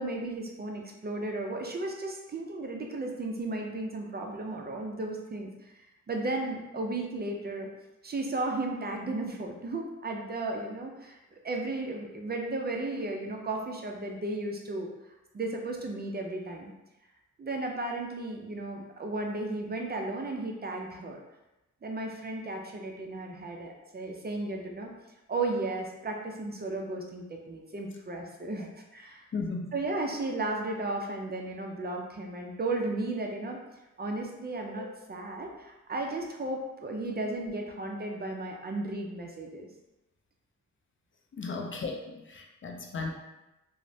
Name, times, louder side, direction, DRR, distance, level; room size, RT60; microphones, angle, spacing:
voice 1, 0.0-5.7 6.1-7.7 8.0-11.2 11.4-14.9 15.3-16.7 17.4-21.2 21.8-24.9 25.3-29.2 29.7-33.6 34.0-39.7, right 2 dB, 30° right, 2 dB, 0.4 m, -34 dB
voice 2, 29.3-29.7 34.8-34.9 41.4-43.1, left 4 dB, 40° left, 2 dB, 0.4 m, -35 dB
3.0 x 2.0 x 2.7 m, 0.98 s
cardioid pair, 60°, 32 cm